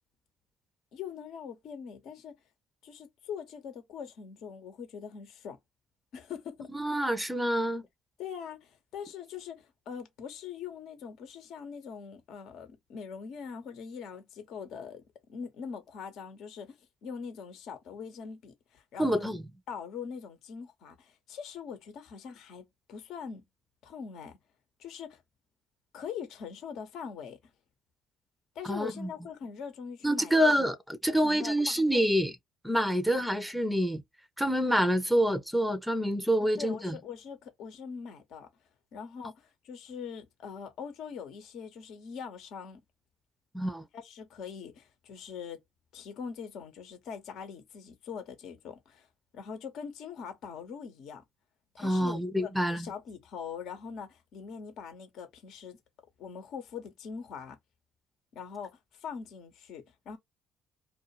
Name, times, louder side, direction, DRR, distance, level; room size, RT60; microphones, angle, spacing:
voice 1, 0.9-2.3 2.8-5.6 6.1-6.7 8.2-15.0 15.3-19.3 19.7-23.4 23.8-24.4 24.8-25.2 25.9-27.4 28.5-30.3 31.1-32.1 33.1-33.2 36.4-38.5 38.9-42.8 43.9-45.6 45.9-51.2 51.7-55.8 56.2-57.6 58.3-60.2, left 6 dB, 65° left, 0.9 m, -42 dB
voice 2, 6.7-7.9 19.0-19.4 28.6-29.1 30.0-32.3 32.6-34.0 34.4-37.0 43.5-43.8 51.8-52.9, equal, ahead, 0.6 m, -27 dB
2.4 x 2.3 x 2.8 m
hypercardioid pair, 55°, 0 cm